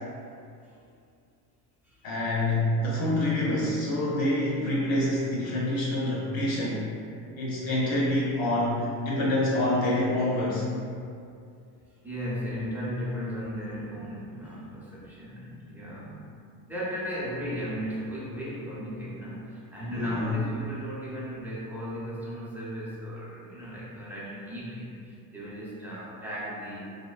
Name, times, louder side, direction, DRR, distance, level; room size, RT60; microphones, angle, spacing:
voice 1, 2.0-6.9 7.4-10.7 19.9-20.3, left 1 dB, 50° left, -5 dB, 0.6 m, -26 dB
voice 2, 12.0-16.3 16.7-26.9, equal, 5° right, -9 dB, 0.6 m, -36 dB
2.5 x 2.1 x 2.3 m, 2.4 s
supercardioid pair, 85°, 46 cm